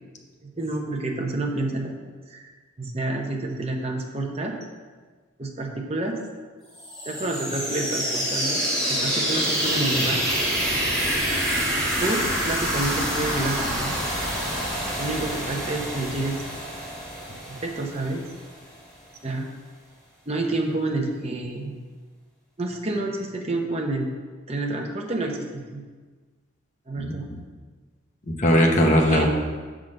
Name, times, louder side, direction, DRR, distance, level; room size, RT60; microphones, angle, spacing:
voice 1, 0.4-1.9 2.3-2.5 2.8-4.5 5.4-6.2 7.0-10.2 12.0-13.9 15.0-16.4 17.5-18.3 19.2-19.4 20.3-21.8 22.6-24.1 24.5-25.8 26.9-27.3 29.1-29.3, right 2 dB, 30° right, 2 dB, 0.8 m, -29 dB
sound 1, 6.8-18.5, equal, 5° left, 2.2 m, -27 dB
voice 2, 27.0-27.4 28.4-29.3, equal, 35° left, 1 dB, 1.0 m, -19 dB
7.2 x 3.8 x 6.5 m, 1.4 s
head